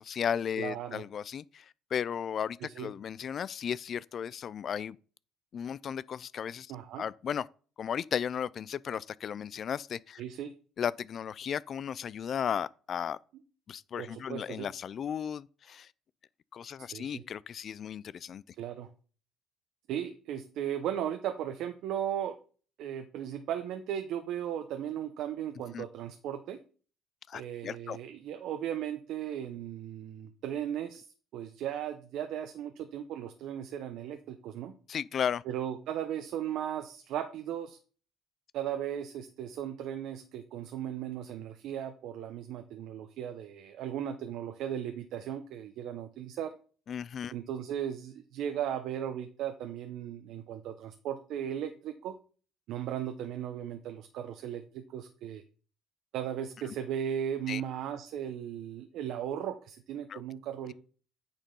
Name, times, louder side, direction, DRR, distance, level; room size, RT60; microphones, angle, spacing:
voice 1, 0.0-5.0 5.5-6.7 7.0-7.5 7.8-10.2 10.8-13.2 13.7-15.9 16.5-18.4 25.7-25.8 27.3-28.0 34.9-35.4 46.9-47.3 57.5-57.6 60.1-60.2, left 8 dB, 50° left, 0.4 m, -35 dB
voice 2, 0.6-1.0 2.6-2.9 6.7-7.0 10.2-10.5 14.0-14.7 16.8-17.2 18.6-18.9 19.9-22.4 22.8-26.6 27.3-31.1 31.3-34.7 35.5-37.8 38.5-46.5 47.3-52.2 52.7-55.4 56.1-60.7, right 10 dB, 70° right, 0.9 m, -36 dB
8.9 x 4.4 x 5.4 m
supercardioid pair, 75°, 0 cm